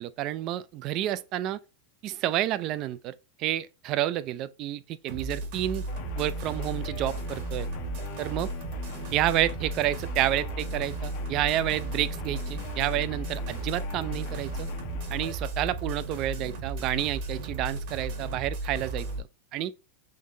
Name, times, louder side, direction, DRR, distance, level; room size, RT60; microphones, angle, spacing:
voice 1, 0.0-1.6 2.0-5.8 6.2-7.7 8.2-8.5 9.1-14.7 15.1-19.3 19.5-19.7, right 13 dB, 45° right, 0.4 m, -30 dB
sound 1, 5.1-19.2, right 2 dB, 60° right, 1.5 m, -34 dB
sound 2, 5.9-15.3, left 11 dB, 55° left, 0.6 m, -43 dB
3.8 x 3.1 x 3.8 m
supercardioid pair, 125°, 0 cm